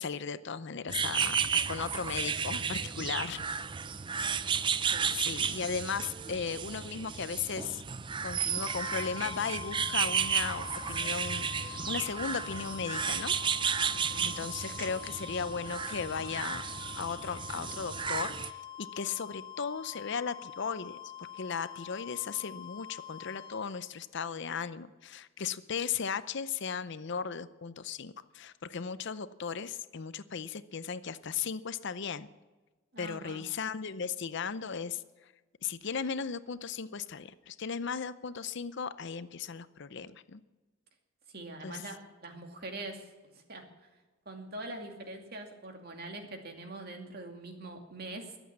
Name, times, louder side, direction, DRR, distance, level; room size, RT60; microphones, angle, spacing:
voice 1, 0.0-3.4 5.1-7.8 8.2-13.3 14.2-16.6 17.0-32.3 33.0-35.3 35.6-40.4 41.6-41.8, left 6 dB, 55° left, 14 dB, 0.6 m, -36 dB
sound 1, 0.9-18.5, right 6 dB, 25° right, 0.4 m, -33 dB
sound 2, 8.5-23.8, left 10 dB, 25° left, 3.1 m, -45 dB
voice 2, 13.9-14.3 32.9-33.4 41.3-43.1 43.3-43.6 44.3-48.4, right 2 dB, 50° right, 3 dB, 2.4 m, -43 dB
22.5 x 8.1 x 7.4 m, 1.2 s
head